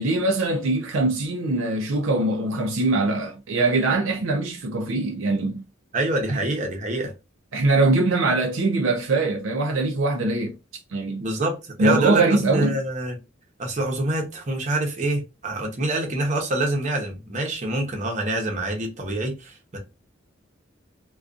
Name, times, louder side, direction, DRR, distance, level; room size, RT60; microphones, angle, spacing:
voice 1, 0.0-5.6 6.3-6.4 7.5-10.6 10.9-11.3 11.8-12.8, right 2 dB, 70° right, 0.5 m, -22 dB
voice 2, 5.9-7.1 11.2-13.2 13.6-19.8, right 2 dB, 35° right, 0.7 m, -26 dB
2.5 x 2.3 x 2.3 m
head